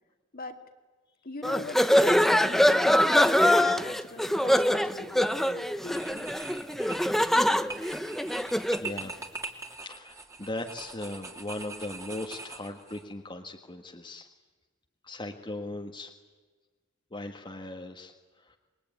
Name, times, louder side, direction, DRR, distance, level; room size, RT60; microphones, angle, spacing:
voice 1, 1.2-6.3, left 3 dB, 45° left, 5 dB, 2.3 m, -42 dB
sound 1, 1.4-8.9, left 1 dB, ahead, 0.8 m, -23 dB
sound 2, 5.0-5.4 5.8-13.0, right 3 dB, 15° right, 2.7 m, -42 dB
voice 2, 8.5-9.1 9.8-14.3 15.0-16.1 17.1-18.1 18.4-18.6, left 2 dB, 25° left, 2 dB, 1.6 m, -38 dB
27.0 x 22.0 x 9.4 m, 1.4 s
head